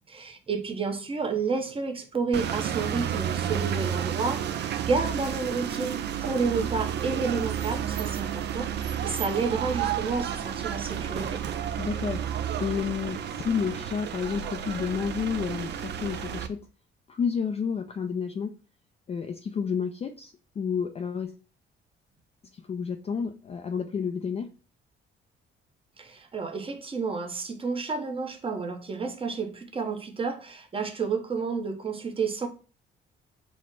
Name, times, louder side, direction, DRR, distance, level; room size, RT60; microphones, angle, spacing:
voice 1, 0.1-11.4 26.0-32.5, right 4 dB, 30° right, 0.8 m, -30 dB
sound 1, 2.3-16.5, right 9 dB, 60° right, 0.5 m, -31 dB
voice 2, 11.8-12.2 12.6-16.7 17.1-18.6 19.1-21.3 22.5-24.5, left 6 dB, 30° left, 0.4 m, -30 dB
4.1 x 2.1 x 4.5 m
cardioid pair, 90°, 20 cm